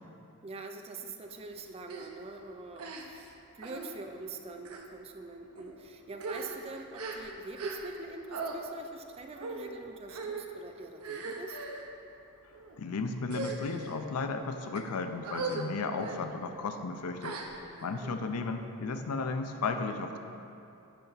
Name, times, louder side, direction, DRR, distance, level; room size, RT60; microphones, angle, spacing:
voice 1, 0.4-11.6 17.9-18.2, right 3 dB, 25° right, 5 dB, 0.3 m, -44 dB
sound 1, 1.9-2.1 2.8-3.3 3.6-3.9 4.6-4.9 5.6-5.7 6.1-8.0 8.3-8.6 9.4-9.7 10.1-10.5 11.0-11.8 12.5-12.8 13.2-13.9 14.5-14.8 15.2-15.7 16.0-16.2 17.2-17.9, right 3 dB, 80° right, 0.7 m, -39 dB
voice 2, 12.8-17.4 17.8-20.2, left 4 dB, 90° left, 7 dB, 0.5 m, -34 dB
9.4 x 4.5 x 3.9 m, 2.7 s
head